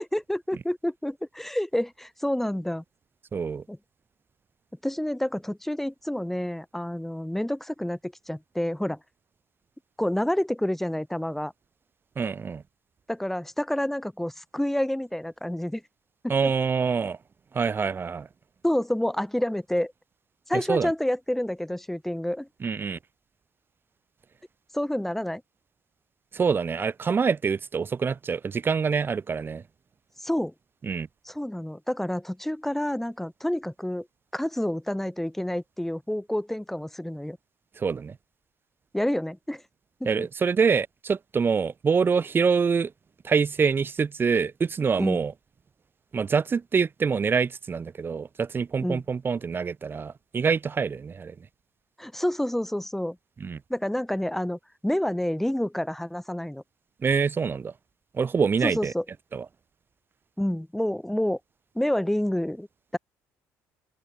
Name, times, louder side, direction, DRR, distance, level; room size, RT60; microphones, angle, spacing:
voice 1, 0.0-2.8 3.7-3.8 4.8-9.0 10.0-11.5 13.1-15.8 16.2-16.5 18.6-19.9 20.5-22.5 24.7-25.4 30.2-30.5 31.3-34.1 34.3-37.4 38.9-39.6 40.0-40.1 45.0-45.2 48.8-49.0 52.0-53.2 53.7-56.6 58.6-59.0 60.4-61.4 61.7-62.7 62.9-63.0, left 1 dB, 5° left, 2.7 m, -28 dB
voice 2, 3.3-3.6 12.2-12.6 16.3-17.2 17.5-18.3 20.5-20.9 22.6-23.0 26.3-29.6 30.8-31.1 37.8-38.2 40.1-42.9 43.2-45.3 46.1-51.4 53.4-53.6 57.0-57.7 58.1-58.9 59.3-59.5, right 5 dB, 35° right, 1.6 m, -25 dB
open air
supercardioid pair, 85°, 7 cm